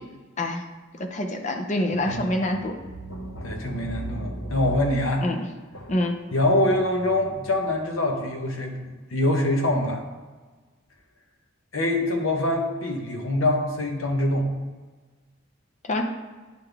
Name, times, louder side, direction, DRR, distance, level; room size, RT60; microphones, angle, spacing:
voice 1, 1.0-2.7 5.2-5.5 5.9-6.2 15.9-16.0, left 1 dB, 35° left, 4 dB, 0.6 m, -26 dB
voice 2, 2.1-2.6 3.0-5.3 5.7-5.9 6.3-8.8 9.1-10.0 11.7-14.5, left 1 dB, 80° left, 2 dB, 1.1 m, -24 dB
10.0 x 3.9 x 3.4 m, 1.3 s
head